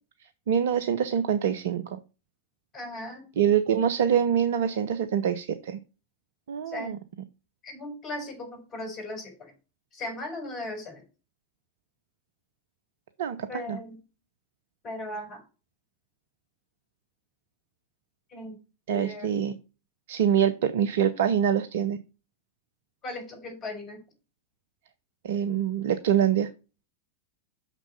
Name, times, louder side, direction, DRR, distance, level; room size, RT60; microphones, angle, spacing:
voice 1, 0.2-2.0 3.4-5.8 6.5-7.0 13.2-13.8 18.9-19.6 20.1-22.0 25.2-26.5, right 9 dB, 55° right, 11 dB, 0.6 m, -25 dB
voice 2, 2.7-3.2 6.7-6.9 7.6-9.5 9.9-11.0 13.5-14.0 14.8-15.4 18.3-18.6 18.9-19.4 23.0-24.0, left 1 dB, 30° left, 3 dB, 4.6 m, -37 dB
6.4 x 6.0 x 5.6 m, 0.32 s
figure-of-eight pair, 90°, 0 cm